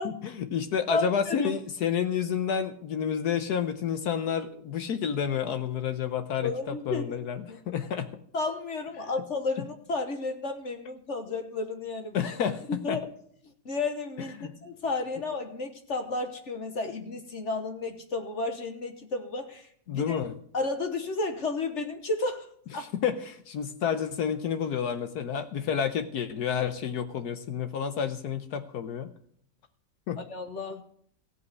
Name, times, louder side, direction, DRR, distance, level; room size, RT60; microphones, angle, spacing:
voice 1, 0.0-8.1 12.1-13.0 14.4-14.5 19.9-20.4 22.7-29.1 30.1-30.2, left 8 dB, 70° left, 10 dB, 1.3 m, -30 dB
voice 2, 0.9-1.5 6.4-7.1 7.5-7.6 8.3-12.2 12.7-13.0 13.6-20.2 20.5-22.5 22.7-22.9 30.2-30.8, left 3 dB, 45° left, 6 dB, 1.3 m, -32 dB
15.5 x 5.5 x 9.4 m, 0.63 s
omnidirectional pair, 1.9 m